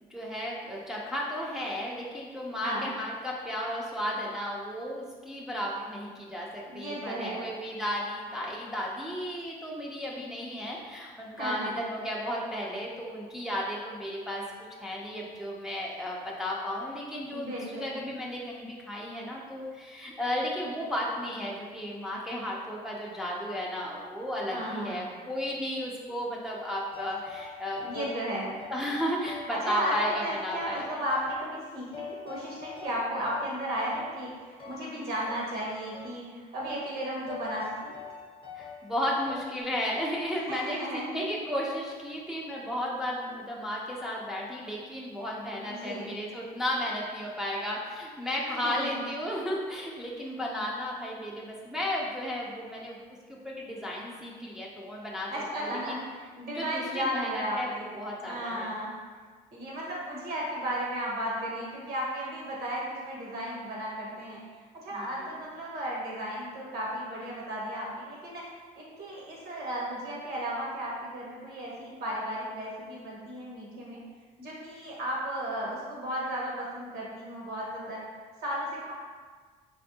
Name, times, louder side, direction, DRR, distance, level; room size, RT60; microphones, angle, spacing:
voice 1, 0.1-14.4 14.8-28.1 28.7-31.0 35.0-35.1 36.3-36.4 38.5-53.0 53.3-55.3 55.6-56.0 56.5-58.7 64.9-65.4, equal, 5° right, -4 dB, 0.5 m, -34 dB
voice 2, 6.7-7.5 11.4-11.7 17.3-17.9 24.5-25.1 27.7-28.6 29.5-37.9 40.3-41.1 45.6-46.1 48.5-49.0 55.3-57.9 58.2-58.9 59.5-64.4 64.8-68.5 68.7-74.0 74.4-78.0 78.4-78.9, equal, 65° right, -5 dB, 1.3 m, -34 dB
sound 1, 26.9-28.2 28.6-29.7 29.9-31.6 31.9-33.5 33.9-35.0 35.3-36.2 36.6-36.9 37.3-38.8 39.3-39.6, left 5 dB, 30° left, 0.7 m, -44 dB
3.5 x 3.4 x 2.7 m, 1.5 s
cardioid pair, 110°, 17 cm